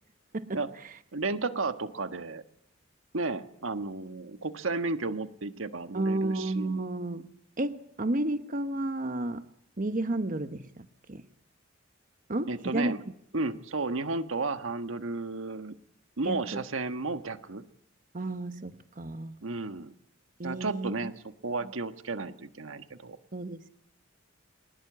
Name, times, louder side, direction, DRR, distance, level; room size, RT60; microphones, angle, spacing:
voice 1, 1.1-2.4 3.1-6.8 12.5-13.0 13.3-15.7 16.2-17.7 19.4-19.9 20.4-23.2, right 3 dB, 80° right, 10 dB, 1.4 m, -33 dB
voice 2, 5.9-7.3 7.6-9.5 9.8-11.2 12.3-12.9 16.2-16.6 18.1-19.4 20.4-20.9 23.3-23.7, right 2 dB, 40° right, 10 dB, 1.0 m, -32 dB
24.0 x 19.5 x 8.7 m, 0.71 s
head